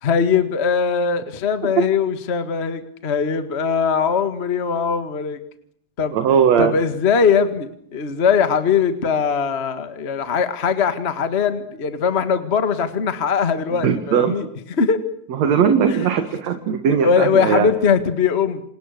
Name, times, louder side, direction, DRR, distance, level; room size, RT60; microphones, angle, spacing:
voice 1, 0.0-5.4 6.0-6.2 6.6-14.5 14.8-15.0 15.9-16.1 17.0-18.6, left 6 dB, 25° left, 10 dB, 1.6 m, -20 dB
voice 2, 6.1-6.7 13.8-14.4 15.4-17.7, right 7 dB, 65° right, 8 dB, 2.9 m, -18 dB
28.5 x 26.5 x 6.7 m, 0.68 s
omnidirectional pair, 3.3 m